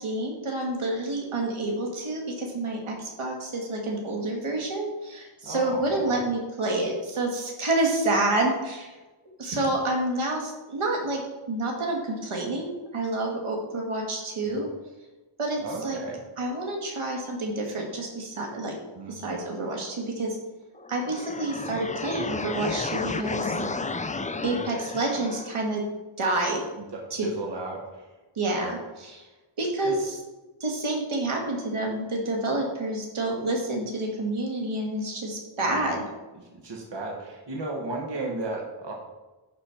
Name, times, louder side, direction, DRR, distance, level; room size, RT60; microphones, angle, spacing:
voice 1, 0.0-8.9 9.4-11.2 11.5-14.7 15.4-16.0 16.4-18.8 19.1-20.4 20.9-23.6 24.4-25.8 26.2-26.6 27.1-27.3 28.4-29.2 29.6-30.2 30.6-36.0, right 2 dB, 75° right, 0 dB, 1.8 m, -28 dB
voice 2, 5.4-6.2 14.4-14.6 15.6-16.2 19.0-19.2 23.5-23.7 26.8-28.1 28.6-28.7 29.8-29.9 35.6-35.8 36.5-38.9, right 2 dB, 55° right, -1 dB, 1.5 m, -35 dB
sound 1, 20.7-25.7, left 3 dB, 20° left, 0.3 m, -32 dB
10.5 x 4.2 x 4.5 m, 1.1 s
wide cardioid pair, 65°, 50 cm